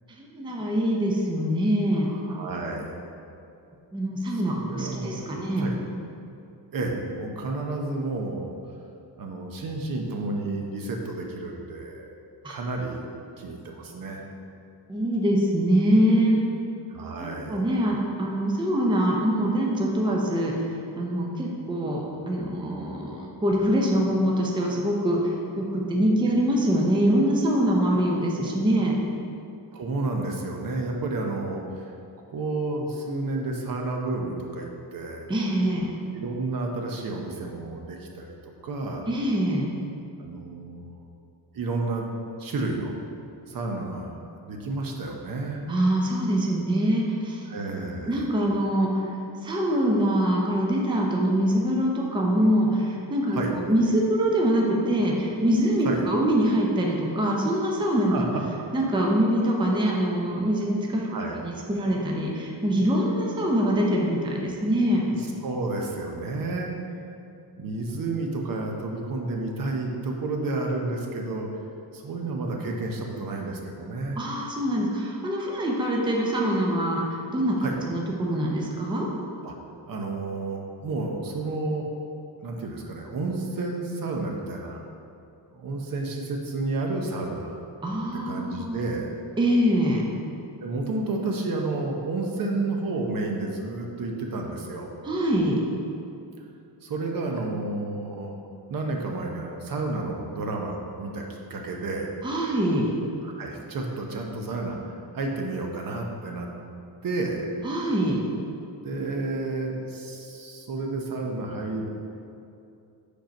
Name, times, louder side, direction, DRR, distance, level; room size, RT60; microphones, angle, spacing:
voice 1, 0.2-2.1 3.9-5.6 12.4-12.6 14.9-16.4 17.2-20.5 21.0-29.0 35.3-35.9 39.1-39.7 45.7-47.4 48.1-58.2 58.7-61.1 61.4-65.1 74.2-77.0 77.3-77.6 77.8-79.1 87.8-88.8 89.4-90.1 95.0-95.6 102.2-102.9 107.6-108.2, equal, 10° right, -2 dB, 0.6 m, -24 dB
voice 2, 2.1-3.0 4.3-5.7 6.7-8.5 9.2-12.1 12.5-13.1 13.4-14.2 16.9-17.6 29.7-31.9 32.3-35.3 36.1-39.1 40.2-41.0 41.5-42.0 42.4-42.9 43.5-45.6 47.5-48.2 53.3-53.5 55.8-56.0 58.1-58.5 61.0-61.4 65.2-66.8 67.6-71.5 71.9-74.2 77.6-77.8 79.4-79.5 79.9-81.9 82.4-84.8 85.5-87.6 88.1-89.1 90.6-94.9 96.8-98.4 98.7-101.2 101.5-102.1 103.2-104.8 105.1-106.5 107.0-107.4 108.8-111.9, right 2 dB, 50° right, 1 dB, 0.8 m, -31 dB
5.1 x 4.4 x 5.2 m, 2.6 s
cardioid pair, 135°, 44 cm